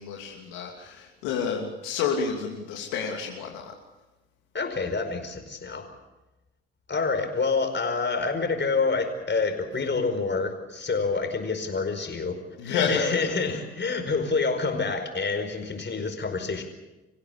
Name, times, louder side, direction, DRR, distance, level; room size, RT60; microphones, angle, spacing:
voice 1, 0.0-3.7 12.6-13.2, left 6 dB, 80° left, 0 dB, 2.9 m, -29 dB
voice 2, 4.5-5.9 6.9-12.4 12.6-16.6, left 4 dB, 35° left, 6 dB, 5.0 m, -27 dB
26.5 x 16.0 x 8.4 m, 1.1 s
hypercardioid pair, 50°, 30 cm